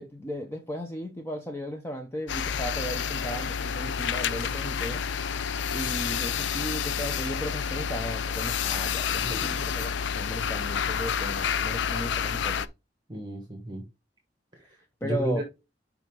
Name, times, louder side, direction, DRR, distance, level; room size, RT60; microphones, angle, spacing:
voice 1, 0.0-5.5 5.7-9.9 10.1-12.7 15.0-15.4, equal, 15° left, 0.7 m, -36 dB
sound 1, 2.3-12.7, left 7 dB, 80° left, 0.4 m, -29 dB
voice 2, 9.2-9.6 13.1-13.8 14.5-15.4, right 1 dB, 25° right, 1.5 m, -33 dB
5.4 x 5.2 x 3.7 m
head